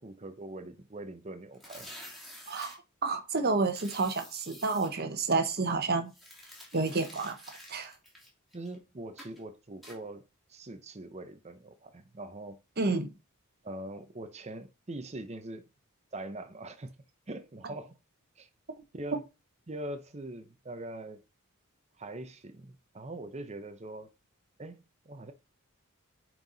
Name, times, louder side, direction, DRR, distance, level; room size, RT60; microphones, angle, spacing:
voice 1, 0.0-1.9 8.5-10.2 10.5-12.6 13.6-15.7 16.1-17.0 17.3-18.0 18.4-18.5 18.9-19.2 19.7-21.2 22.0-24.1 24.6-25.3, right 2 dB, 30° right, 0.8 m, -42 dB
sound 1, 1.5-2.8 3.7-4.9 6.1-8.7 9.2-9.4 9.8-10.0, equal, ahead, 3.1 m, -49 dB
voice 2, 2.5-6.1 6.7-7.4 7.7-7.9 12.8-13.1, right 3 dB, 50° right, 1.1 m, -29 dB
9.4 x 4.7 x 4.0 m
head